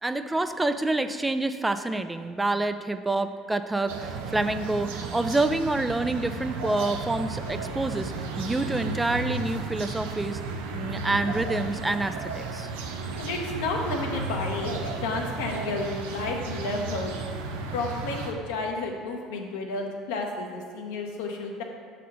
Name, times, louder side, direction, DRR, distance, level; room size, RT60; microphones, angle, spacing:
voice 1, 0.0-10.4 10.7-12.7, right 2 dB, 15° right, 9 dB, 0.4 m, -27 dB
sound 1, 3.9-18.3, right 4 dB, 85° right, 0.6 m, -34 dB
voice 2, 13.2-14.7 15.0-17.3 17.7-21.6, left 3 dB, 80° left, 1 dB, 0.9 m, -31 dB
6.3 x 4.2 x 5.5 m, 2.2 s
hypercardioid pair, 70°, 0 cm